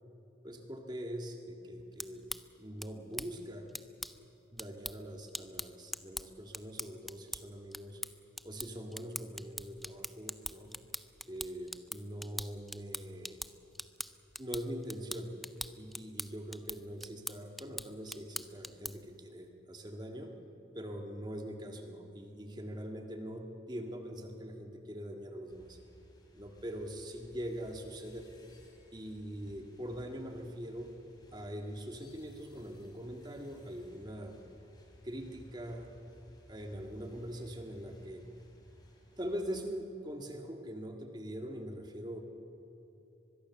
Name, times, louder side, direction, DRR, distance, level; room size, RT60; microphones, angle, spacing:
voice 1, 0.4-2.3 2.6-3.7 4.5-8.0 8.4-10.7 11.3-13.4 14.4-15.3 15.7-20.3 20.7-25.8 26.3-28.3 28.9-30.9 31.3-34.4 35.0-35.9 36.5-38.3 39.2-42.2, equal, 20° right, 4 dB, 1.8 m, -42 dB
sound 1, 1.8-19.2, equal, ahead, 0.4 m, -44 dB
sound 2, 25.5-39.7, equal, 20° left, 3.2 m, -59 dB
24.0 x 21.5 x 7.1 m, 2.9 s
head